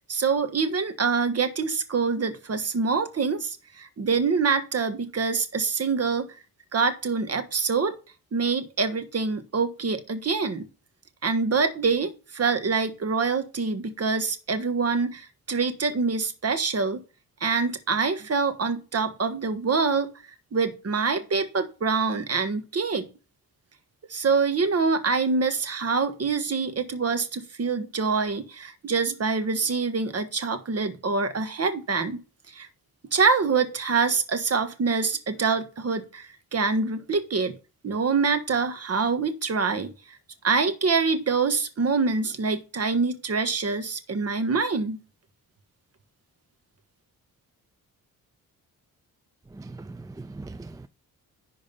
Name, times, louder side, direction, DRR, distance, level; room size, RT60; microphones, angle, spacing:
voice 1, 0.1-6.3 6.7-8.0 8.3-10.6 11.2-17.0 17.4-20.1 20.5-23.0 24.1-32.2 32.5-32.7 33.1-37.5 37.8-39.9 40.4-45.0, right 4 dB, 45° right, 1.5 m, -25 dB
voice 2, 49.5-50.9, right 3 dB, 10° right, 0.4 m, -40 dB
11.0 x 3.8 x 5.4 m
cardioid pair, 90°, 36 cm